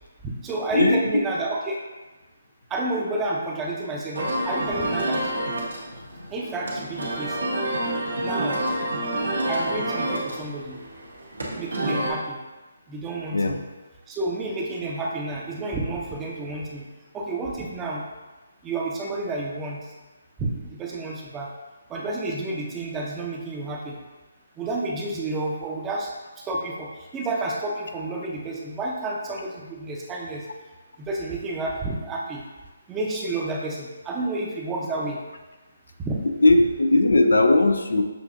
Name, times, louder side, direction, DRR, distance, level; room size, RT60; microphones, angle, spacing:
voice 1, 0.4-1.8 2.7-5.2 6.3-7.4 8.2-8.6 9.5-10.8 11.6-12.4 12.9-13.7 14.1-16.9 17.1-18.0 18.6-19.8 20.4-21.5 21.9-24.0 24.6-26.1 26.4-30.4 31.0-32.4 32.9-35.2 36.0-36.2, right 2 dB, 15° right, -2 dB, 0.6 m, -30 dB
sound 1, 4.1-12.1, right 1 dB, 85° right, 1.2 m, -28 dB
voice 2, 36.4-38.0, left 2 dB, 80° left, 5 dB, 0.5 m, -18 dB
6.6 x 2.7 x 2.5 m, 1.2 s
figure-of-eight pair, 150°, 0 cm